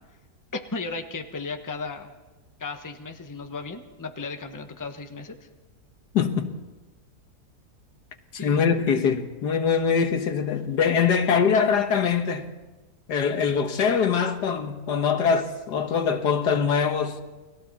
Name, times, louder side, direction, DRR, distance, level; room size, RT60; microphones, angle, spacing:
voice 1, 0.5-2.1 2.6-5.4 8.3-8.6, left 4 dB, 15° left, 1.0 m, -35 dB
voice 2, 6.1-6.5 8.4-12.5 13.1-17.2, left 6 dB, 80° left, 1.9 m, -23 dB
29.5 x 21.0 x 4.2 m
omnidirectional pair, 1.7 m